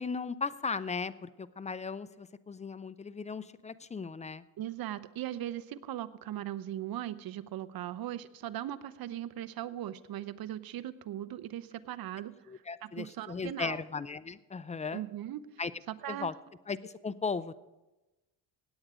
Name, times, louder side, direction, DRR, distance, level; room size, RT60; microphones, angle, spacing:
voice 1, 0.0-4.4 12.5-15.0 15.6-15.7 16.1-16.3 16.7-17.6, left 4 dB, 15° left, 16 dB, 0.4 m, -37 dB
voice 2, 4.6-12.5 12.8-13.8 14.9-15.4 16.0-16.3, right 12 dB, 55° right, 15 dB, 0.8 m, -39 dB
17.0 x 8.8 x 4.9 m, 1.1 s
cardioid pair, 90°, 44 cm